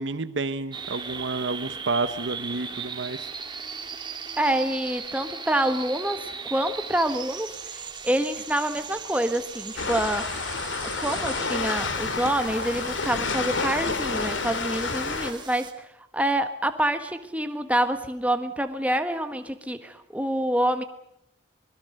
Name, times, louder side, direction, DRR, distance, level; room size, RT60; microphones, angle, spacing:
voice 1, 0.0-3.3, right 3 dB, 75° right, 12 dB, 0.9 m, -30 dB
sound 1, 0.7-15.7, right 6 dB, 25° right, 1.9 m, -38 dB
voice 2, 4.4-10.4 10.8-15.7 16.1-20.8, right 1 dB, 5° right, 8 dB, 1.4 m, -27 dB
sound 2, 9.8-15.3, left 4 dB, 85° left, 2.4 m, -29 dB
25.5 x 22.0 x 6.7 m, 0.76 s
head